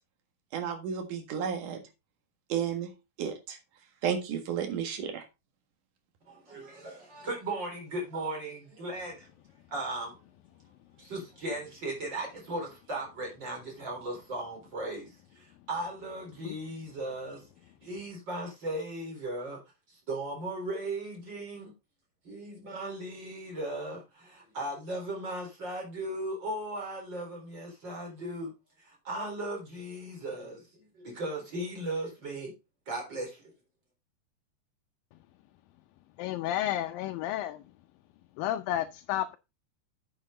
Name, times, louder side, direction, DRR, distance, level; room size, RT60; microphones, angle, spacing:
voice 1, 0.5-1.8 2.5-2.9 3.2-3.6 4.0-5.2, right 8 dB, 65° right, 3.1 m, -32 dB
voice 2, 6.3-9.3 9.7-10.2 11.0-17.5 17.8-19.6 19.9-21.7 22.2-28.5 28.8-32.5 32.9-33.5, right 1 dB, 30° right, 4.5 m, -37 dB
voice 3, 36.2-37.6 38.4-39.4, left 12 dB, 85° left, 2.4 m, -31 dB
8.8 x 7.0 x 3.8 m
omnidirectional pair, 4.1 m